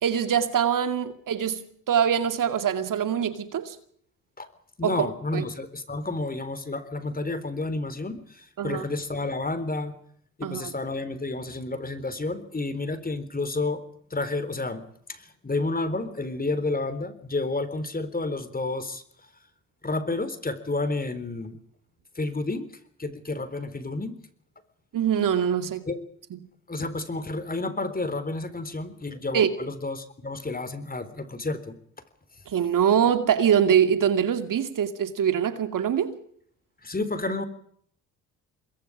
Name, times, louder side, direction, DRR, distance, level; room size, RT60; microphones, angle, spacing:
voice 1, 0.0-3.8 4.8-5.1 5.3-5.4 8.6-8.8 10.4-10.7 24.9-25.9 29.3-29.5 32.5-36.2, right 8 dB, 55° right, 2.4 m, -23 dB
voice 2, 4.8-9.9 10.4-13.8 14.1-14.8 15.1-19.0 19.8-21.6 22.2-22.7 23.0-24.2 25.9-26.0 26.7-31.8 36.8-37.4, left 2 dB, 25° left, 3.9 m, -30 dB
27.5 x 21.5 x 5.0 m
hypercardioid pair, 60°, 38 cm